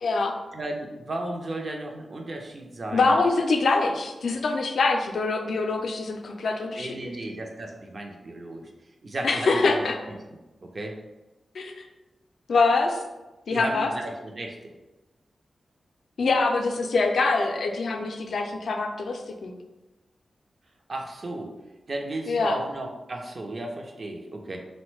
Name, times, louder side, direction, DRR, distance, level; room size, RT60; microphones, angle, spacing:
voice 1, 0.0-0.3 2.9-7.1 9.2-10.0 11.5-11.9 12.5-13.0 13.5-13.9 16.2-19.5 22.3-22.6, left 3 dB, 80° left, 4 dB, 0.4 m, -24 dB
voice 2, 0.5-3.2 6.8-8.7 9.0-9.8 10.6-10.9 13.5-14.7 20.9-21.5 21.9-24.6, right 2 dB, 50° right, 2 dB, 0.5 m, -34 dB
3.4 x 2.1 x 3.1 m, 1.1 s
wide cardioid pair, 105°, 0 cm